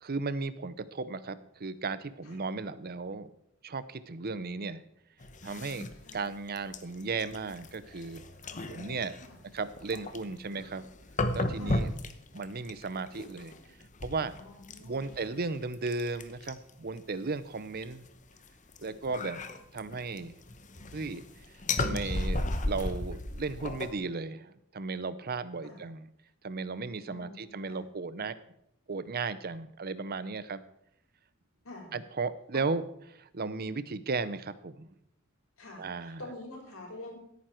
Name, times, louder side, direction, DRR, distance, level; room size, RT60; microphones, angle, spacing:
voice 1, 0.0-3.3 3.6-4.8 5.4-8.2 8.7-9.1 9.5-10.9 11.3-11.9 12.3-13.5 14.0-14.3 14.8-18.1 18.8-19.4 19.7-20.3 20.9-21.2 21.8-26.0 26.4-28.4 28.9-30.6 31.9-32.8 33.1-34.9 35.8-36.2, right 4 dB, 50° right, 14 dB, 0.7 m, -35 dB
sound 1, 5.2-17.0 17.8-23.9, left 2 dB, 35° left, 1.0 m, -35 dB
voice 2, 5.5-6.3 8.5-9.4 11.6-11.9 14.3-15.4 19.1-19.4 25.6-25.9 27.0-27.8 31.6-32.0 32.5-32.6 35.6-37.2, left 2 dB, 85° left, 0 dB, 4.8 m, -48 dB
16.5 x 9.3 x 4.5 m, 0.75 s
head